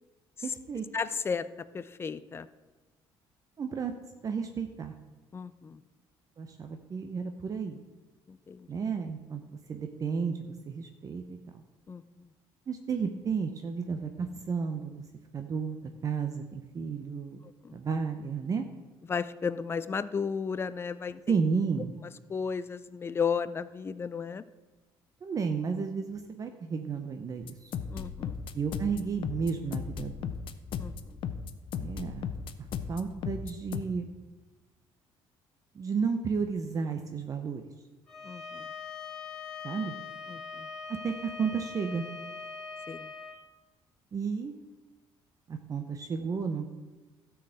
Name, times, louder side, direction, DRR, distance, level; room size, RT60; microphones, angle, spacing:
voice 1, 0.4-0.9 3.6-3.9 4.2-4.9 6.4-7.8 8.7-9.4 9.7-11.6 12.7-15.0 15.3-15.8 16.0-18.7 21.3-21.9 25.2-27.7 28.5-30.3 31.7-32.3 32.6-34.1 35.7-37.7 39.6-39.9 40.9-42.1 44.1-44.5 45.5-46.7, right 5 dB, 35° right, 6 dB, 0.8 m, -32 dB
voice 2, 0.9-1.5 1.7-2.5 5.3-5.8 8.3-8.7 11.9-12.3 17.6-17.8 19.1-21.2 22.3-24.4 27.9-28.4 30.8-30.9 38.2-38.7 40.3-40.7 42.9-43.1, left 6 dB, 25° left, 14 dB, 0.4 m, -34 dB
sound 1, 27.4-33.8, left 7 dB, 60° left, 0.7 m, -35 dB
Bowed string instrument, 38.1-43.4, left 4 dB, 5° left, 3.3 m, -42 dB
12.5 x 4.7 x 7.6 m, 1.2 s
cardioid pair, 105°, 10 cm